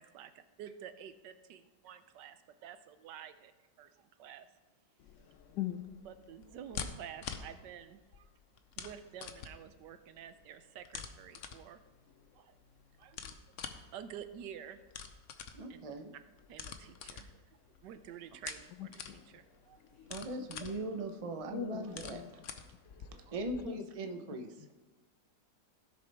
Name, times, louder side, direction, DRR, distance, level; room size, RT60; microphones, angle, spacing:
voice 1, 0.0-3.5 3.8-4.5 6.0-8.3 8.8-11.8 12.3-12.5 13.0-13.4 13.7-14.8 15.7-15.9 16.5-17.4 17.8-19.8 23.3-23.4, right 9 dB, 75° right, 10 dB, 1.2 m, -50 dB
sound 1, 5.0-23.6, left 7 dB, 60° left, 0.9 m, -48 dB
voice 2, 15.5-16.1 20.1-22.2 23.3-24.6, right 2 dB, 45° right, 5 dB, 0.4 m, -40 dB
voice 3, 21.5-22.3 23.6-23.8, left 11 dB, 75° left, 11 dB, 1.2 m, -39 dB
16.5 x 6.7 x 3.4 m, 1.2 s
omnidirectional pair, 1.9 m